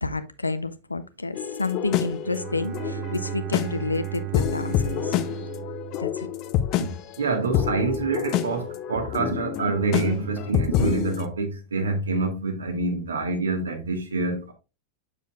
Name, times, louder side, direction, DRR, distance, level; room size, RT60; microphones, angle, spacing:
voice 1, 0.0-5.2 6.0-6.3, left 3 dB, 80° left, 0.6 m, -30 dB
sound 1, 1.3-11.3, left 11 dB, 40° left, 0.6 m, -28 dB
Bowed string instrument, 2.2-6.9, right 16 dB, 40° right, 0.9 m, -35 dB
voice 2, 7.2-14.5, right 3 dB, 70° right, 1.5 m, -26 dB
7.1 x 6.8 x 2.3 m
figure-of-eight pair, 90°, 0 cm